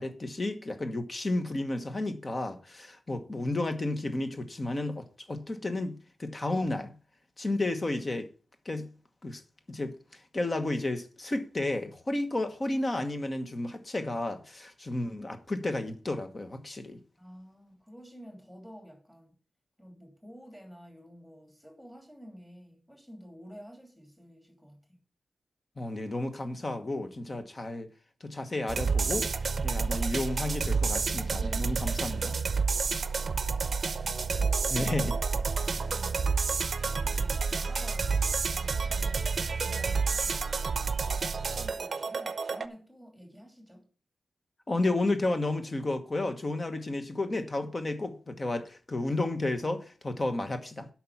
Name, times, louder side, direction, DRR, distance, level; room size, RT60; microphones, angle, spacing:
voice 1, 0.0-6.9 7.4-8.3 8.6-8.9 9.2-9.4 9.7-17.0 25.8-27.9 28.2-29.3 29.6-32.4 34.7-35.2 44.7-50.9, left 2 dB, 30° left, 1.2 m, -32 dB
voice 2, 17.2-19.4 19.8-25.0 32.9-34.5 35.7-41.0 41.4-43.9, equal, 5° left, 2.8 m, -51 dB
sound 1, 28.7-42.7, right 5 dB, 50° right, 0.7 m, -29 dB
8.5 x 5.9 x 7.2 m
wide cardioid pair, 145°, 0 cm